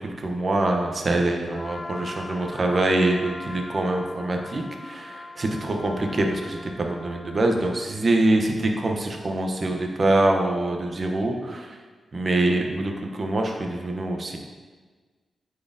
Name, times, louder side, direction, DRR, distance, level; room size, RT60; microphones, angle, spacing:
voice 1, 0.2-11.8 12.1-14.4, right 2 dB, 40° right, 2 dB, 0.8 m, -24 dB
Trumpet, 1.5-7.9, left 2 dB, 25° left, 0.4 m, -41 dB
9.4 x 4.1 x 2.7 m, 1.4 s
wide cardioid pair, 105°, 0 cm